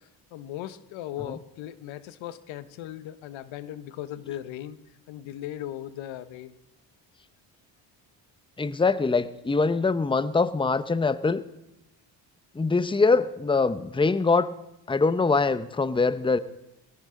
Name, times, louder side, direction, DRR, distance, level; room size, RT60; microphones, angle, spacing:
voice 1, 0.0-4.8 5.1-6.6, left 12 dB, 85° left, 14 dB, 1.0 m, -38 dB
voice 2, 8.6-11.4 12.5-14.5 14.9-16.4, left 4 dB, 10° left, 14 dB, 0.8 m, -23 dB
20.5 x 17.0 x 3.8 m, 0.92 s
supercardioid pair, 65°, 45 cm